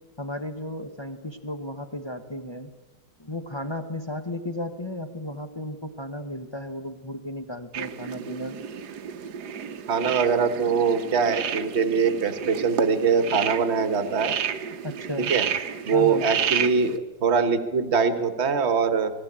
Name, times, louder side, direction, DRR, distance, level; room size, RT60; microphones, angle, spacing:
voice 1, 0.2-2.7 3.2-8.6 14.8-15.3 15.9-16.3, left 1 dB, 35° left, 6 dB, 0.4 m, -34 dB
sound 1, 7.7-17.0, right 8 dB, 60° right, 1.3 m, -31 dB
voice 2, 9.9-14.3 15.2-15.5 15.8-19.1, right 5 dB, 35° right, 10 dB, 1.3 m, -23 dB
19.5 x 16.5 x 8.7 m, 1.2 s
omnidirectional pair, 2.3 m